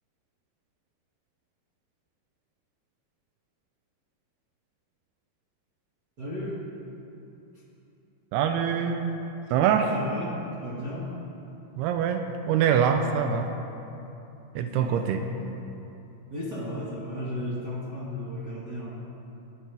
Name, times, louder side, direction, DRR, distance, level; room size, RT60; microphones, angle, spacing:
voice 1, 6.2-6.6 9.8-11.2 14.6-15.3 16.3-19.0, left 1 dB, 40° right, -7 dB, 1.5 m, -35 dB
voice 2, 8.3-9.2 9.5-9.9 11.8-13.5 14.6-15.2, right 7 dB, 85° right, 6 dB, 2.7 m, -24 dB
22.5 x 12.5 x 3.5 m, 2.9 s
omnidirectional pair, 4.6 m